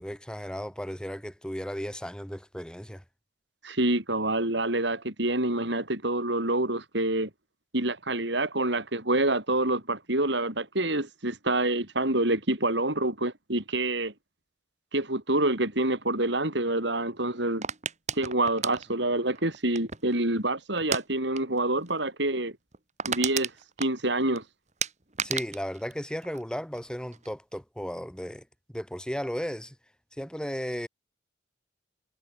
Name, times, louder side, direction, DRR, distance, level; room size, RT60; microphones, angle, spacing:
voice 1, 0.0-3.0 25.2-28.4 28.7-29.7 30.2-30.9, equal, 5° left, 4.3 m, -35 dB
voice 2, 3.6-7.3 7.7-14.1 14.9-17.6 18.2-22.5 23.1-23.5 23.8-24.4, right 2 dB, 65° right, 5.8 m, -27 dB
sound 1, 17.6-20.2 20.8-21.1 21.3-21.6 21.9-22.0 22.4-22.5 22.7-24.4 24.8-26.8 27.1-27.6, right 7 dB, 40° right, 3.6 m, -33 dB
head